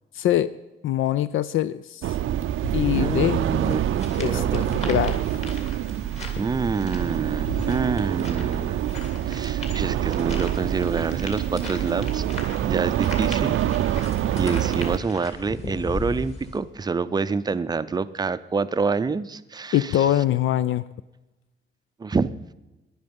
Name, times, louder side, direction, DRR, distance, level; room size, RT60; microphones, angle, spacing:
voice 1, 0.1-0.5 0.8-2.2 2.7-3.4 4.2-5.3 8.9-9.0 19.7-20.8, left 12 dB, 80° left, 16 dB, 0.4 m, -23 dB
sound 1, 2.0-15.0, right 12 dB, 80° right, 0.5 m, -26 dB
sound 2, 2.6-16.6, left 1 dB, 30° left, 2.7 m, -36 dB
voice 2, 2.9-4.8 6.4-8.9 9.3-12.2 12.6-13.6 14.4-20.1 22.0-22.5, right 4 dB, 20° right, 14 dB, 0.5 m, -27 dB
17.5 x 11.0 x 5.3 m, 1.0 s
wide cardioid pair, 150°, 20 cm